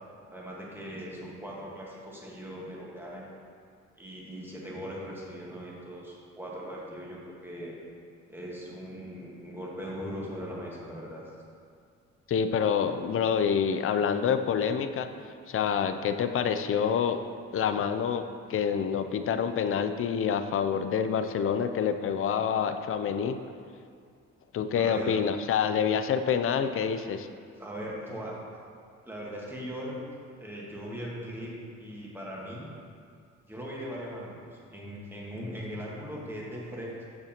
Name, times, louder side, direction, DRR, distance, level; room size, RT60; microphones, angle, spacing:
voice 1, 0.3-3.2 4.0-7.8 8.3-11.2 24.7-25.1 27.6-28.3 29.0-30.0 30.4-31.5 31.8-32.7 33.5-37.1, equal, 5° right, -4 dB, 1.4 m, -39 dB
voice 2, 12.3-15.1 15.5-17.2 17.5-18.2 18.5-23.4 24.5-27.3, left 7 dB, 45° left, 9 dB, 0.4 m, -27 dB
7.2 x 6.4 x 2.9 m, 2.2 s
cardioid pair, 90°, 30 cm